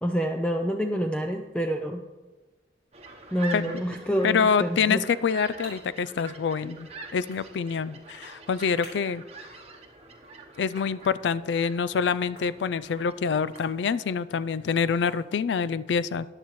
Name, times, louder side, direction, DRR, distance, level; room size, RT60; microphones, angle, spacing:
voice 1, 0.0-2.0 3.3-5.0, equal, 5° left, 3 dB, 0.4 m, -27 dB
sound 1, 2.9-13.7, right 3 dB, 35° right, 0.9 m, -45 dB
voice 2, 4.2-9.2 10.6-16.3, left 6 dB, 85° left, 17 dB, 0.4 m, -26 dB
sound 2, 4.9-15.8, left 1 dB, 60° left, 3.7 m, -54 dB
14.0 x 9.9 x 3.1 m, 1.2 s
head